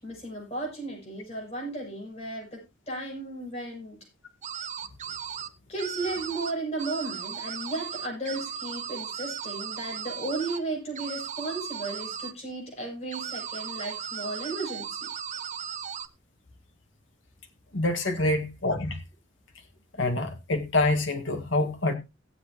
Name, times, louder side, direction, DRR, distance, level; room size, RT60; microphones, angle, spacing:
voice 1, 0.0-2.6 2.9-4.0 5.7-15.1, right 2 dB, 35° left, 7.6 m, -34 dB
sound 1, 4.4-5.5 5.8-6.5 6.8-10.6 10.9-12.3 13.1-16.1, right 8 dB, 40° right, 0.7 m, -36 dB
voice 2, 17.7-19.0 20.0-21.9, left 2 dB, 75° left, 1.8 m, -26 dB
17.5 x 8.0 x 3.0 m
head